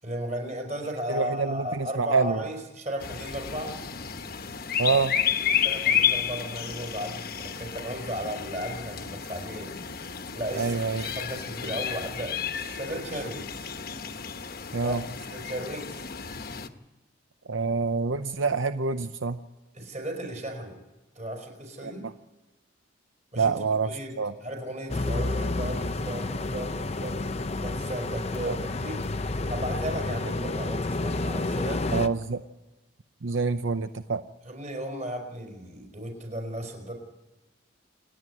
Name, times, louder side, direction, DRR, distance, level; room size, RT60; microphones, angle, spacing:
voice 1, 0.0-3.8 5.5-9.7 10.3-13.7 14.8-16.1 19.7-20.8 21.1-22.0 23.3-23.5 23.8-24.1 24.4-27.2 27.6-29.1 29.5-32.1 34.4-36.9, right 1 dB, 35° right, 3 dB, 5.0 m, -35 dB
voice 2, 1.1-2.4 4.8-5.1 10.6-11.1 14.7-15.0 17.5-19.4 21.8-21.9 23.4-23.9 24.2-24.3 28.4-28.5 31.9-32.4 33.2-34.2, right 4 dB, 80° right, 10 dB, 0.7 m, -26 dB
sound 1, 3.0-16.7, left 8 dB, 50° left, 1.1 m, -31 dB
sound 2, 24.9-32.1, left 2 dB, 35° left, 0.7 m, -30 dB
28.0 x 9.4 x 9.9 m, 1.1 s
head